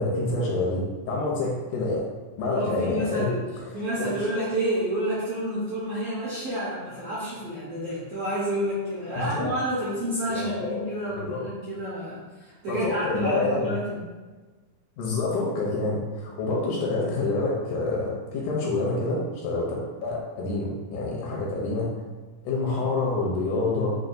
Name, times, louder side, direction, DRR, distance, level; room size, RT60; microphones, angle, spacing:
voice 1, 0.0-2.0 2.4-3.3 4.0-4.2 9.1-9.5 10.3-11.4 12.7-13.7 15.0-19.8 20.0-21.9 22.4-24.0, left 3 dB, 80° left, -3 dB, 1.9 m, -27 dB
voice 2, 2.5-3.4 3.7-14.0, right 1 dB, 75° right, -9 dB, 1.4 m, -29 dB
6.3 x 2.3 x 2.5 m, 1.3 s
omnidirectional pair, 3.9 m